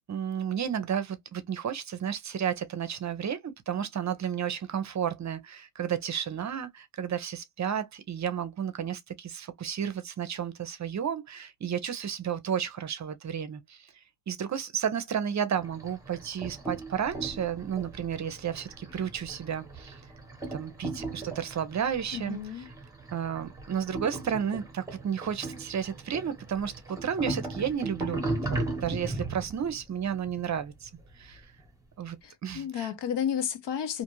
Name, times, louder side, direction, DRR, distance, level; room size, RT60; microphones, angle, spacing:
voice 1, 0.1-20.0 20.5-22.6 23.1-31.5 32.0-32.2 32.4-32.9, right 8 dB, 45° right, 0.5 m, -32 dB
sound 1, 15.5-31.7, right 2 dB, 10° right, 0.9 m, -38 dB
voice 2, 22.1-22.7 32.2-34.0, left 9 dB, 90° left, 0.7 m, -32 dB
2.5 x 2.3 x 3.0 m
wide cardioid pair, 140°, 41 cm